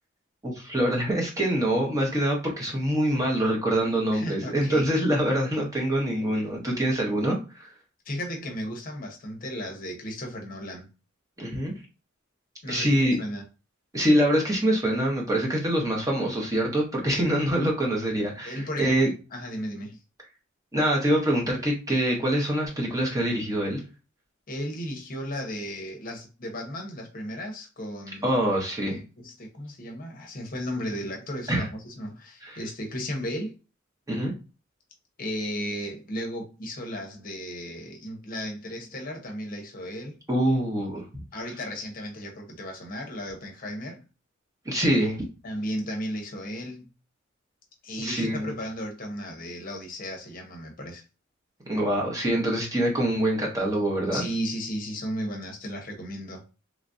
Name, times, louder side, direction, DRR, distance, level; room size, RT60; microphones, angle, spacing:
voice 1, 0.4-7.7 11.4-11.7 12.7-13.2 13.9-19.1 20.7-23.8 28.2-29.0 31.5-31.7 32.4-32.6 34.1-34.3 40.3-41.2 44.7-45.2 48.0-48.5 51.7-54.2, right 1 dB, 15° right, 0.8 m, -25 dB
voice 2, 4.1-4.9 8.0-10.9 12.6-13.4 18.4-19.0 19.3-20.0 24.5-28.4 29.2-33.5 35.2-40.2 41.3-44.0 45.4-46.9 47.8-51.0 54.1-56.5, equal, 45° left, 0.7 m, -35 dB
3.1 x 2.4 x 2.5 m
head